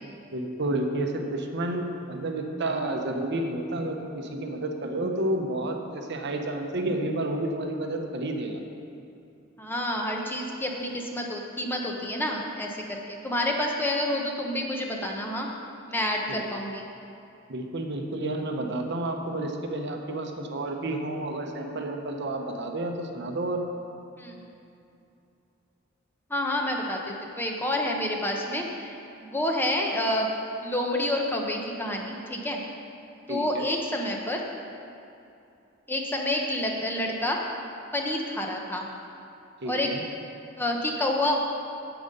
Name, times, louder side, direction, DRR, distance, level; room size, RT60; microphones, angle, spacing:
voice 1, 0.3-8.6 16.3-16.4 17.5-23.6 33.3-33.6 39.6-40.0, right 1 dB, 60° right, 4 dB, 0.9 m, -30 dB
voice 2, 9.6-15.5 15.9-16.9 24.2-24.4 26.3-30.3 30.6-32.6 33.3-34.4 35.9-37.4 37.9-38.9 39.6-39.9 40.6-41.4, left 1 dB, 10° left, 0 dB, 0.9 m, -28 dB
9.0 x 7.9 x 5.3 m, 2.7 s
head